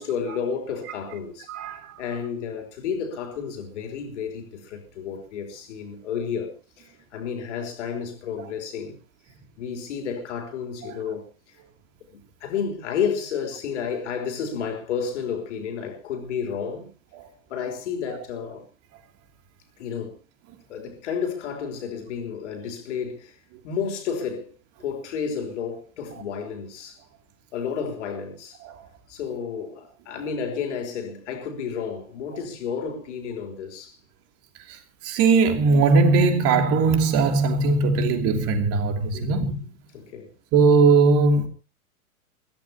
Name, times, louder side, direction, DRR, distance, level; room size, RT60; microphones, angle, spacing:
voice 1, 0.0-1.5 2.0-9.0 9.6-11.6 12.1-16.9 17.5-18.7 19.8-20.1 20.7-23.4 23.6-24.5 24.8-27.0 27.5-28.6 29.1-34.0 39.1-39.5 39.9-40.3, left 6 dB, 55° left, 3.5 m, -31 dB
voice 2, 1.5-1.9 35.0-39.6 40.5-41.5, right 4 dB, 35° right, 2.8 m, -19 dB
22.5 x 15.0 x 2.9 m
figure-of-eight pair, 100°, 43 cm